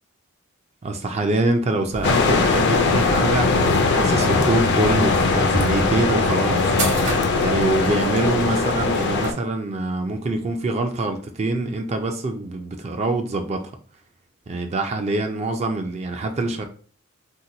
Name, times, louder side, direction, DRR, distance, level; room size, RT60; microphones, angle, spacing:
voice 1, 0.8-6.7 7.4-13.7 14.5-16.6, right 2 dB, 30° right, 5 dB, 0.3 m, -25 dB
sound 1, 1.9-8.0, equal, 60° right, 1.0 m, -28 dB
sound 2, 2.0-9.3, left 3 dB, 55° left, 0.4 m, -20 dB
2.8 x 2.1 x 3.8 m, 0.43 s
head